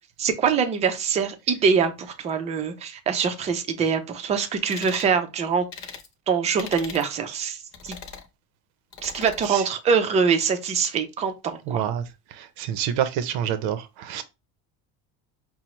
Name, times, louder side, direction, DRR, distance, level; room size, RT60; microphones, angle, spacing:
voice 1, 0.2-5.6 6.3-8.0 9.0-11.8, right 6 dB, 20° right, 0.3 m, -24 dB
sound 1, 4.7-5.1 5.7-6.1 6.6-7.1 7.7-8.3 8.9-9.5, left 6 dB, 45° left, 0.8 m, -39 dB
voice 2, 11.7-12.0 12.3-14.2, right 9 dB, 80° right, 0.6 m, -27 dB
5.5 x 2.0 x 2.9 m
cardioid pair, 170°, 38 cm